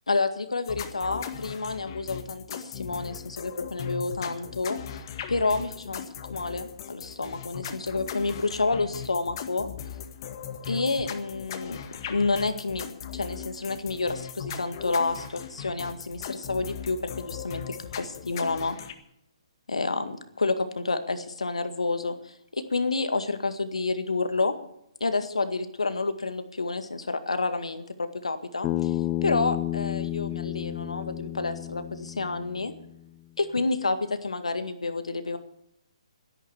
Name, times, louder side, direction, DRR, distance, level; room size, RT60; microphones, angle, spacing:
voice 1, 0.1-4.8 5.3-9.7 10.7-11.8 12.1-12.9 13.1-18.8 19.7-24.6 25.0-28.9 29.2-32.7 33.4-35.4, left 3 dB, 80° left, 10 dB, 1.9 m, -29 dB
sound 1, 0.6-18.9, left 8 dB, 45° left, 1.7 m, -39 dB
Bass guitar, 28.6-32.9, left 14 dB, 20° left, 0.6 m, -31 dB
13.0 x 11.0 x 8.3 m, 0.74 s
figure-of-eight pair, 135°, 3 cm